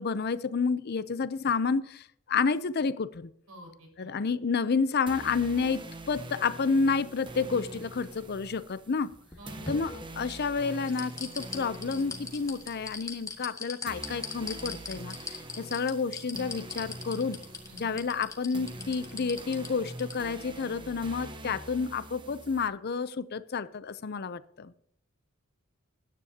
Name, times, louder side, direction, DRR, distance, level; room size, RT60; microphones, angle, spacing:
voice 1, 0.0-3.3 4.0-9.1 9.7-17.4 17.8-24.7, left 5 dB, 50° left, 0.5 m, -30 dB
voice 2, 3.5-4.3 9.4-9.7 17.6-18.0, equal, 75° right, 6.0 m, -50 dB
sound 1, 5.1-22.7, right 1 dB, 25° right, 1.0 m, -44 dB
sound 2, 9.1-10.4 10.9-20.1 20.5-20.6, left 4 dB, 15° left, 1.6 m, -39 dB
20.5 x 10.0 x 2.8 m
head